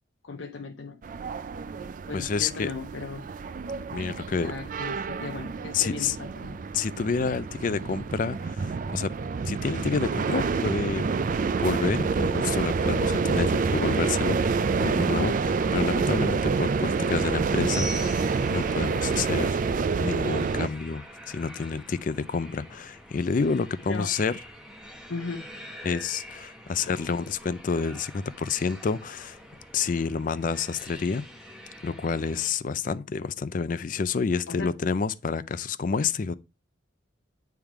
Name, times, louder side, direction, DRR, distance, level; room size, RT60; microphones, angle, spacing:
voice 1, 0.2-1.0 2.1-3.3 4.4-6.6 23.9-24.1 25.1-25.5 34.5-34.7, left 4 dB, 75° left, 0.7 m, -36 dB
sound 1, 1.0-20.7, right 4 dB, 40° right, 0.3 m, -27 dB
voice 2, 2.1-2.7 3.9-4.5 5.7-6.2 6.7-9.1 9.4-11.1 11.6-19.6 20.0-24.4 25.8-29.4 29.7-31.2 31.8-36.3, left 5 dB, 40° left, 0.4 m, -29 dB
sound 2, 17.7-32.5, equal, 5° right, 1.0 m, -44 dB
8.8 x 3.5 x 4.6 m
head